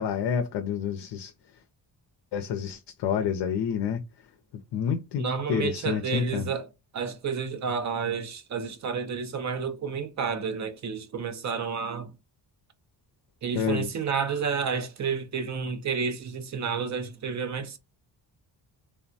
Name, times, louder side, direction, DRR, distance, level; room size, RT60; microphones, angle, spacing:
voice 1, 0.0-1.3 2.3-4.0 4.7-6.5 13.5-13.9, left 7 dB, 70° left, 0.5 m, -28 dB
voice 2, 5.2-6.6 6.9-12.1 13.4-17.8, right 6 dB, 45° right, 0.5 m, -30 dB
3.3 x 2.1 x 2.5 m
wide cardioid pair, 175°, 42 cm